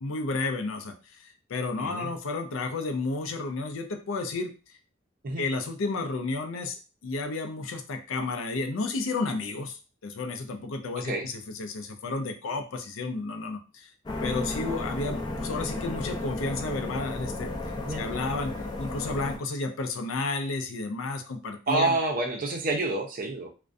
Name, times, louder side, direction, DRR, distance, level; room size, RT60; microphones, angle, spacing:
voice 1, 0.0-4.8 5.4-13.9 14.2-21.9, left 3 dB, 80° left, 6 dB, 0.4 m, -32 dB
voice 2, 1.8-2.1 5.2-5.5 11.0-11.3 17.8-18.0 21.7-23.5, right 2 dB, 45° right, 1 dB, 0.5 m, -28 dB
sound 1, 14.1-19.4, left 2 dB, 20° left, 0.4 m, -33 dB
2.4 x 2.1 x 2.5 m, 0.33 s
head